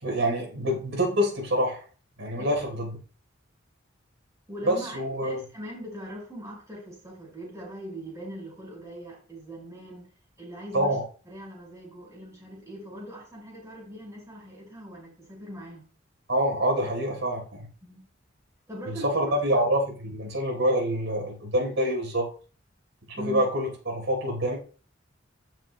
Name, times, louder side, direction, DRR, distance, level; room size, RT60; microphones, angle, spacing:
voice 1, 0.0-1.8 2.2-3.0 4.6-5.4 10.7-11.0 16.3-17.7 18.9-22.3 23.1-24.6, equal, 75° right, 0 dB, 3.9 m, -26 dB
voice 2, 4.5-10.0 10.4-11.0 11.2-15.9 17.1-17.2 17.8-18.1 18.7-19.6 23.2-23.4, equal, 15° right, -3 dB, 5.1 m, -41 dB
15.0 x 7.4 x 2.2 m, 0.38 s
head